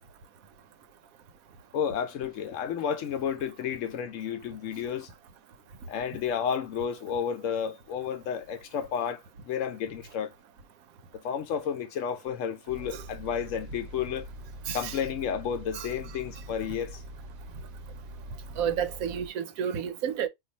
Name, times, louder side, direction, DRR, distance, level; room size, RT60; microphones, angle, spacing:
voice 1, 1.7-5.1 5.9-10.3 11.1-14.3 14.7-17.0, left 8 dB, 70° left, 0.9 m, -32 dB
sound 1, 12.7-19.3, right 1 dB, 55° right, 0.8 m, -44 dB
voice 2, 14.7-15.0 15.7-15.9 18.6-20.3, right 8 dB, 90° right, 1.1 m, -31 dB
2.6 x 2.4 x 3.9 m
omnidirectional pair, 1.4 m